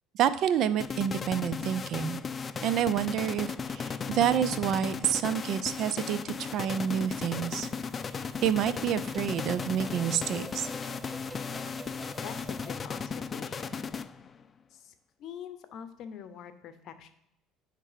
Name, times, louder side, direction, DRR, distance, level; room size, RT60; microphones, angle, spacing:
voice 1, 0.1-2.2 2.6-7.7 8.2-10.7, right 9 dB, 60° right, 14 dB, 0.4 m, -28 dB
sound 1, 0.8-14.4, left 5 dB, 30° left, 0.3 m, -36 dB
sound 2, 6.3-12.7, equal, ahead, 0.7 m, -48 dB
voice 2, 12.2-13.9 14.7-14.9 15.2-17.1, left 8 dB, 60° left, 10 dB, 0.7 m, -44 dB
8.7 x 3.3 x 4.9 m, 0.80 s
supercardioid pair, 100°, 0 cm